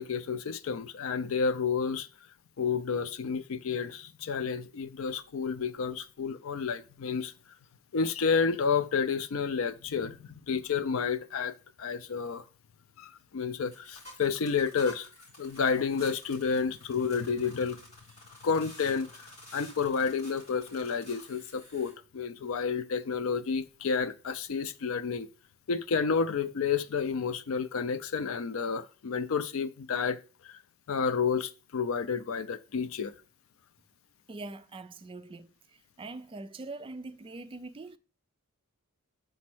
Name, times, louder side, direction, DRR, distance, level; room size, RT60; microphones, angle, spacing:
voice 1, 0.0-2.1 2.6-7.3 7.9-12.4 13.0-15.1 15.4-17.8 18.4-25.3 25.7-30.2 30.4-30.6 30.9-33.1, left 5 dB, 65° left, 0.5 m, -30 dB
sound 1, 13.7-21.9, left 2 dB, 30° left, 4.0 m, -51 dB
voice 2, 34.3-35.5 36.0-38.0, right 2 dB, 25° right, 0.3 m, -42 dB
5.3 x 4.2 x 6.0 m
head